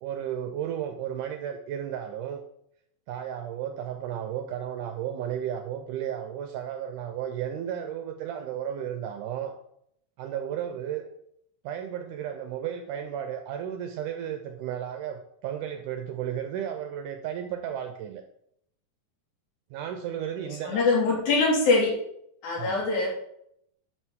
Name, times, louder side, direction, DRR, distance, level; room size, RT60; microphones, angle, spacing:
voice 1, 0.0-2.4 3.1-9.5 10.2-11.1 11.6-18.2 19.7-21.2 22.6-22.9, right 9 dB, 80° right, 6 dB, 1.9 m, -34 dB
voice 2, 20.3-22.0 22.4-23.1, left 3 dB, 80° left, -3 dB, 4.2 m, -23 dB
11.0 x 6.2 x 3.6 m, 0.74 s
omnidirectional pair, 4.2 m